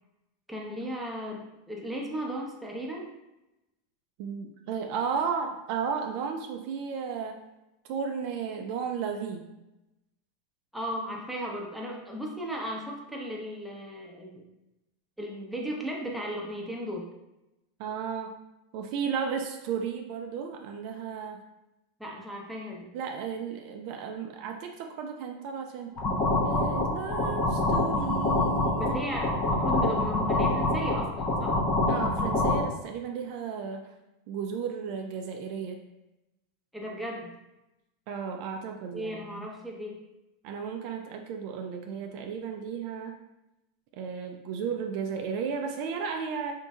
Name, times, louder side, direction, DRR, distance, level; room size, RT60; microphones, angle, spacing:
voice 1, 0.5-3.1 10.7-14.4 15.2-17.1 22.0-22.9 28.8-31.6 36.7-37.3 38.9-40.0, equal, 5° right, -2 dB, 0.6 m, -36 dB
voice 2, 4.2-7.4 7.9-9.5 17.8-18.4 18.7-21.4 22.9-25.9 26.4-29.1 31.9-33.8 34.3-35.8 38.1-39.5 40.4-43.2 43.9-46.5, right 6 dB, 60° right, 4 dB, 0.3 m, -34 dB
sound 1, 26.0-32.6, left 2 dB, 45° left, 0.6 m, -26 dB
2.9 x 2.6 x 2.3 m, 0.93 s
hypercardioid pair, 110°, 0 cm